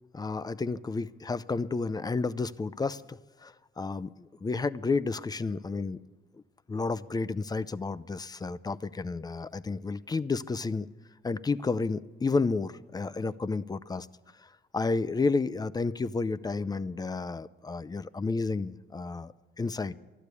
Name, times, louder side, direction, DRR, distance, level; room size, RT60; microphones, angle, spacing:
voice 1, 0.1-6.0 6.7-10.9 11.2-14.1 14.4-19.9, left 4 dB, 20° left, 18 dB, 0.5 m, -31 dB
12.0 x 12.0 x 8.3 m, 1.3 s
cardioid pair, 90°, 20 cm